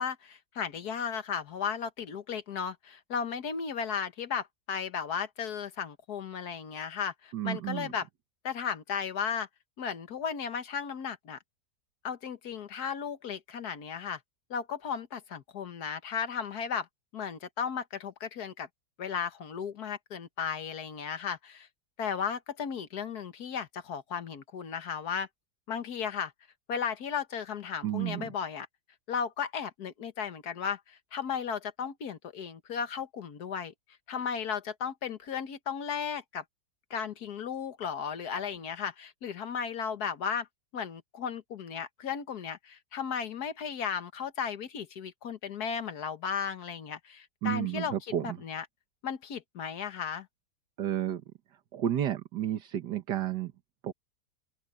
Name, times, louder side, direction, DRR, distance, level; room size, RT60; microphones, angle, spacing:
voice 1, 0.0-8.1 8.4-9.5 9.8-11.4 12.0-14.2 14.5-16.9 17.1-18.7 19.0-21.7 22.0-25.3 25.7-26.3 26.7-28.7 29.1-33.7 34.1-36.4 36.9-40.5 40.7-48.7 49.0-50.3, left 7 dB, 65° left, 1.8 m, -35 dB
voice 2, 7.3-7.9 27.8-28.2 47.4-48.4 50.8-51.2 51.7-53.5 53.8-53.9, right 11 dB, 85° right, 1.8 m, -31 dB
open air
omnidirectional pair, 1.8 m